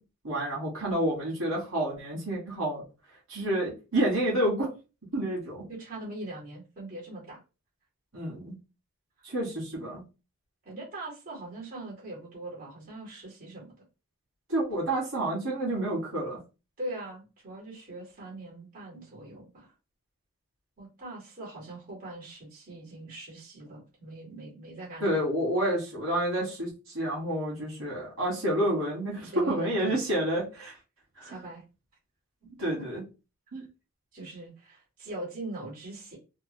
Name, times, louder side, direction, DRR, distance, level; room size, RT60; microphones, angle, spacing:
voice 1, 0.2-2.8 3.3-4.7 5.1-5.6 8.1-8.6 9.2-10.0 14.5-16.4 25.0-26.7 26.9-30.7 31.2-31.4 32.6-33.0 33.5-33.6, right 1 dB, 65° right, -5 dB, 1.8 m, -29 dB
voice 2, 5.7-7.4 10.7-13.7 16.8-19.7 20.8-25.2 29.2-30.0 31.2-31.6 32.8-32.9 34.1-36.2, right 2 dB, 40° right, -4 dB, 1.8 m, -41 dB
3.6 x 2.0 x 3.0 m, 0.30 s
head